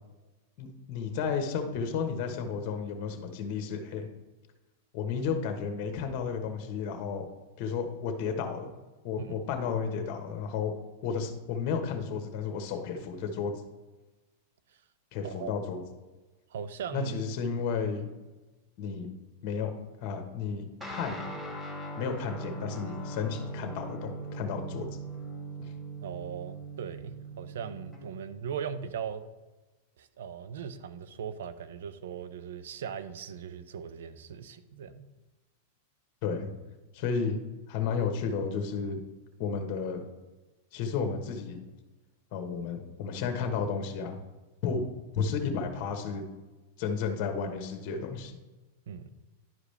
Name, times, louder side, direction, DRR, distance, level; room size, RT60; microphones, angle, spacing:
voice 1, 0.6-4.1 4.9-7.3 7.6-8.7 9.0-10.7 11.0-13.6 15.1-15.8 16.9-18.1 18.8-19.1 19.4-19.7 20.0-21.2 22.0-24.9 25.6-25.7 36.2-36.5 36.9-37.4 37.7-39.0 39.4-40.0 40.7-41.6 42.3-44.2 44.6-44.9 45.1-46.2 46.8-48.3, left 6 dB, 50° left, 5 dB, 1.2 m, -32 dB
voice 2, 16.5-17.1 17.5-17.6 26.0-29.2 30.0-35.1 48.9-49.1, right 7 dB, 80° right, 13 dB, 0.6 m, -39 dB
Guitar, 20.8-28.5, right 2 dB, 10° right, 1.4 m, -40 dB
11.0 x 5.0 x 3.3 m, 1.2 s
hypercardioid pair, 125°, 0 cm